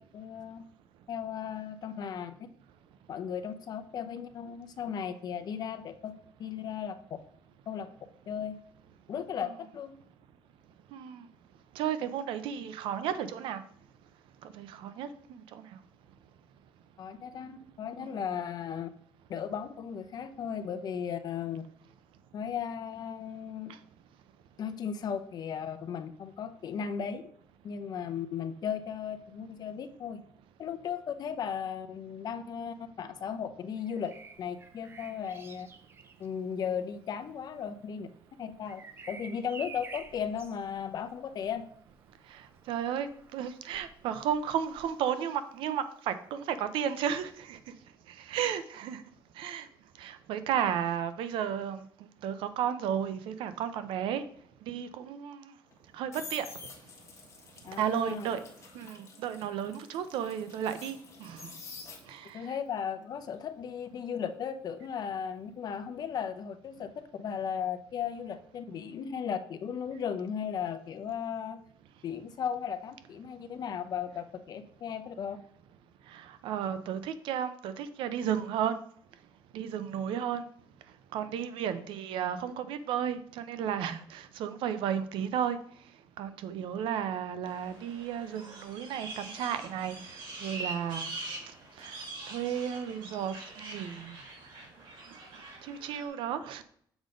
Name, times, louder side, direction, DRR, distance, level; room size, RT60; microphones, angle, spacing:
voice 1, 0.1-0.6 1.1-2.3 3.1-6.1 6.4-7.0 7.7-7.9 8.3-8.6 9.1-9.9 17.0-18.9 19.3-21.6 22.3-23.7 24.6-27.2 27.6-30.2 30.6-34.1 34.4-35.7 36.2-38.1 38.4-38.8 39.1-41.6 57.6-58.3 62.3-71.6 72.0-75.4, left 7 dB, 50° left, 10 dB, 0.7 m, -36 dB
voice 2, 10.9-11.3 11.7-13.6 14.4-15.6 18.0-18.1 42.3-47.6 48.2-49.0 49.4-49.7 50.0-51.8 52.2-54.2 54.7-55.5 55.9-56.5 57.8-58.4 58.7-61.5 62.1-62.4 76.1-78.8 79.5-80.4 81.1-85.6 86.2-91.1 91.8-94.1 95.6-96.6, right 9 dB, 90° right, 11 dB, 0.6 m, -33 dB
Bird vocalization bird call bird song, 33.8-45.6 47.3-47.5, right 4 dB, 30° right, 0.6 m, -52 dB
sound 1, 55.7-62.4 62.8-65.7 65.9-66.3, left 4 dB, 35° left, 1.4 m, -49 dB
sound 2, 87.4-96.1, right 2 dB, 70° right, 3.2 m, -44 dB
7.1 x 3.8 x 5.1 m, 0.63 s
cardioid pair, 130°, 8 cm